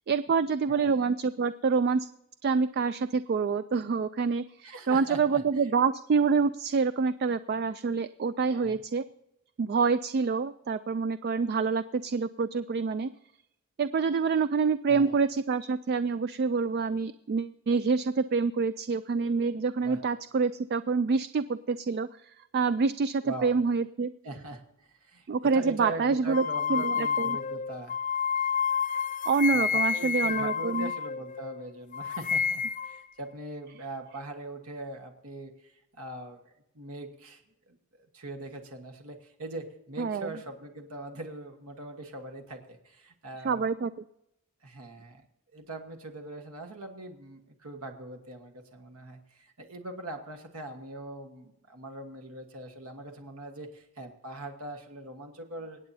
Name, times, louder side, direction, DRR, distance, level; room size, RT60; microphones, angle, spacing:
voice 1, 0.1-2.1 2.4-9.0 9.6-13.1 13.8-24.1 25.3-26.4 26.7-27.4 29.3-30.9 40.0-40.3 43.4-43.9, right 5 dB, 45° right, 13 dB, 0.3 m, -27 dB
voice 2, 0.7-1.1 4.6-5.7 8.5-8.8 14.9-15.2 19.8-20.0 23.2-23.6 24.2-25.3 25.5-28.0 29.5-43.6 44.6-45.2 45.5-55.8, right 1 dB, 80° right, 4 dB, 1.4 m, -42 dB
sound 1, 26.3-31.6 31.9-33.0, left 7 dB, 35° left, 0.3 m, -29 dB
24.5 x 8.8 x 2.7 m, 0.84 s
head